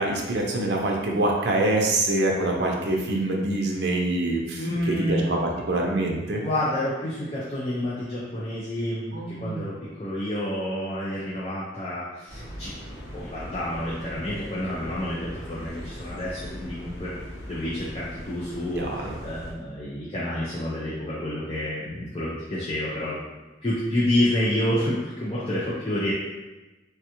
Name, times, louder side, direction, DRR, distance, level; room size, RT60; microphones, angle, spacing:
voice 1, 0.0-6.4 9.1-9.6 18.7-19.1, right 2 dB, 65° right, 0 dB, 0.5 m, -25 dB
voice 2, 4.6-5.3 6.4-12.8 13.1-17.1 17.5-23.2 23.6-26.1, left 1 dB, 30° left, -7 dB, 0.5 m, -29 dB
sound 1, 12.3-19.5, equal, 75° left, 1.0 m, -40 dB
3.3 x 2.4 x 2.8 m, 1.1 s
head